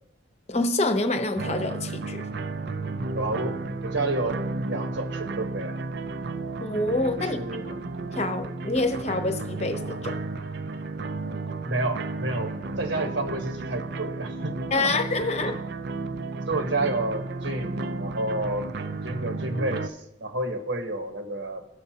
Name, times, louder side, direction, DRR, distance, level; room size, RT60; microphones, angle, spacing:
voice 1, 0.5-2.2 6.6-7.4 8.1-10.2 14.7-15.5, left 2 dB, 35° left, 7 dB, 0.8 m, -26 dB
sound 1, 1.4-19.9, right 3 dB, 60° right, 0.5 m, -33 dB
voice 2, 3.2-5.8 7.3-7.7 11.7-14.9 15.4-15.6 16.4-18.7 19.0-21.6, right 2 dB, 75° right, 4 dB, 1.3 m, -30 dB
18.0 x 6.6 x 2.8 m, 0.86 s
head